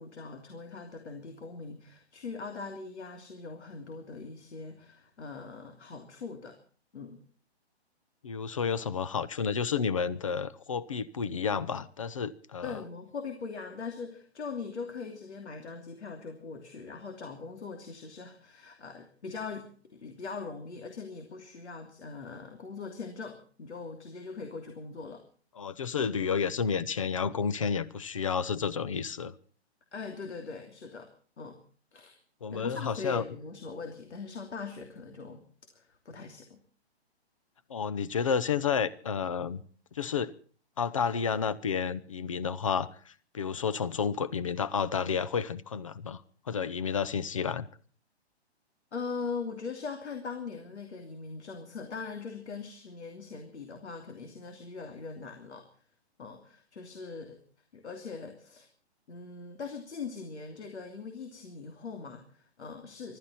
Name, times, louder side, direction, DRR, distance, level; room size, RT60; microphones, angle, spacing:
voice 1, 0.0-6.6 6.9-7.2 12.6-25.2 29.9-31.1 31.4-31.6 31.9-32.2 32.5-35.4 35.7-36.6 48.9-55.8 56.2-57.4 57.7-58.7 59.1-63.2, left 4 dB, 80° left, 2.9 m, -41 dB
voice 2, 8.2-12.7 25.6-29.3 32.4-33.2 37.7-39.6 39.9-40.3 40.8-46.2 46.5-47.7, left 6 dB, 30° left, 0.7 m, -31 dB
25.0 x 13.0 x 4.2 m
hypercardioid pair, 175°, 33 cm